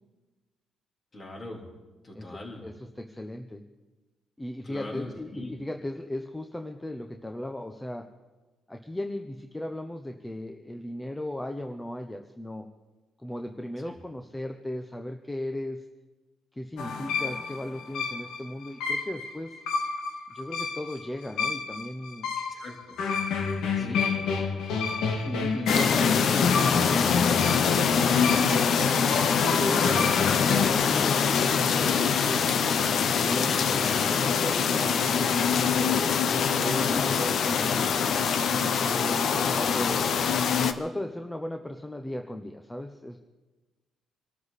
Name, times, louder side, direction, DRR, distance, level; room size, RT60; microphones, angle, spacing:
voice 1, 1.1-1.6 2.0-2.6 4.6-5.5 13.8-14.0 22.5-23.0 23.7-24.0, left 2 dB, 30° left, 0 dB, 3.6 m, -41 dB
voice 2, 2.1-3.6 4.4-8.1 8.7-12.7 13.2-15.8 16.5-19.6 20.3-22.3 23.7-24.3 25.2-29.0 29.5-32.5 33.2-36.1 36.6-37.9 38.5-40.2 40.8-43.2, left 1 dB, 10° left, 5 dB, 0.8 m, -36 dB
sound 1, 16.8-30.7, left 5 dB, 85° left, 1.9 m, -29 dB
sound 2, 25.7-40.7, left 6 dB, 55° left, 0.9 m, -24 dB
25.0 x 13.0 x 4.2 m, 1.2 s
cardioid pair, 125°, 0 cm